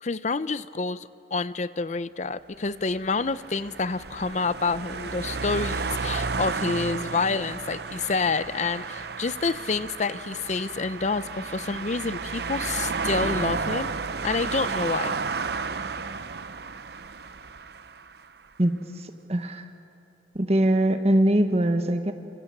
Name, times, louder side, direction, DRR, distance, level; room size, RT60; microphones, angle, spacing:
voice 1, 0.0-13.9 14.2-15.2, left 4 dB, 40° left, 15 dB, 0.6 m, -28 dB
sound 1, 2.8-18.2, right 4 dB, 60° right, 0.8 m, -32 dB
voice 2, 18.6-19.7 20.3-22.1, right 1 dB, 35° right, 7 dB, 1.3 m, -22 dB
29.5 x 27.0 x 7.3 m, 2.6 s
head